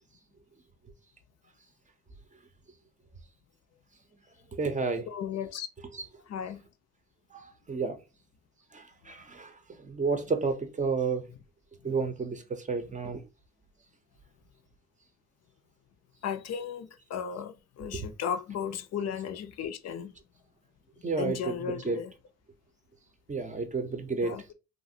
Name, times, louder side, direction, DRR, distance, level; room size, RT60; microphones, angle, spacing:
voice 1, 4.5-5.1 5.9-6.1 7.3-8.0 8.7-11.2 11.8-13.2 17.9-18.1 21.0-22.0 23.3-24.4, right 4 dB, 25° right, 0.5 m, -31 dB
voice 2, 5.1-5.7 6.3-6.6 11.8-11.9 16.2-20.1 21.2-22.1 24.2-24.4, left 7 dB, 60° left, 0.5 m, -35 dB
2.9 x 2.4 x 2.6 m
cardioid pair, 90°, 30 cm